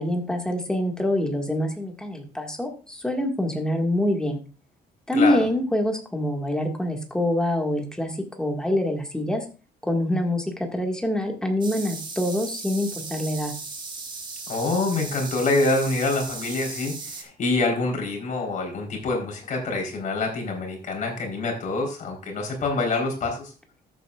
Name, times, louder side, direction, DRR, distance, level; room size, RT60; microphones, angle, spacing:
voice 1, 0.0-4.4 5.1-9.4 9.8-10.4 10.7-13.5, left 1 dB, 5° left, 2 dB, 1.8 m, -25 dB
voice 2, 5.1-5.5 14.5-23.5, left 3 dB, 50° left, 1 dB, 4.0 m, -26 dB
sound 1, 11.6-17.2, right 4 dB, 25° right, 1.4 m, -36 dB
13.5 x 8.0 x 2.4 m, 0.34 s
cardioid pair, 155°, 17 cm